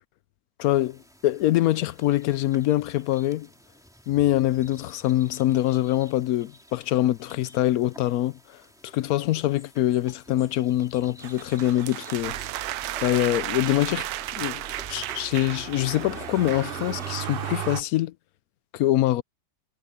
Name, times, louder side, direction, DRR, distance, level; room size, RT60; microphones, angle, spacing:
voice 1, 0.6-3.5 4.1-8.6 8.9-12.4 13.0-14.6 14.9-18.1 18.7-19.2, left 14 dB, 75° left, 1.0 m, -24 dB
sound 1, 0.6-17.1, equal, ahead, 3.0 m, -50 dB
Motor vehicle (road), 11.2-17.8, right 10 dB, 50° right, 0.7 m, -38 dB
sound 2, 11.6-16.8, right 14 dB, 80° right, 1.1 m, -34 dB
omnidirectional pair, 1.6 m